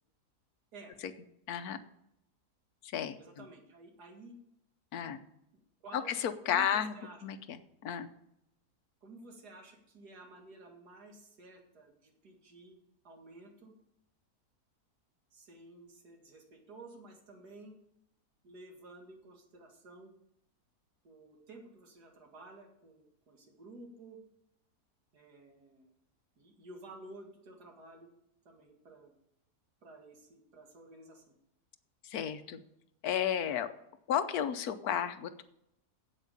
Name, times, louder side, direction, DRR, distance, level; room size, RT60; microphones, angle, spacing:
voice 1, 1.5-1.8 2.8-3.4 4.9-5.2 5.9-6.9 7.2-8.1 32.0-32.6 33.0-33.7 34.1-35.4, left 9 dB, 70° left, 11 dB, 1.2 m, -33 dB
voice 2, 3.2-4.3 5.8-6.1 6.5-7.4 9.0-12.8 13.0-13.7 15.3-17.8 18.4-20.1 21.0-24.2 25.1-25.9 26.4-28.1 28.5-29.1 29.8-31.3, right 2 dB, 75° right, 2 dB, 2.5 m, -53 dB
8.3 x 8.2 x 6.7 m, 0.81 s
omnidirectional pair, 1.7 m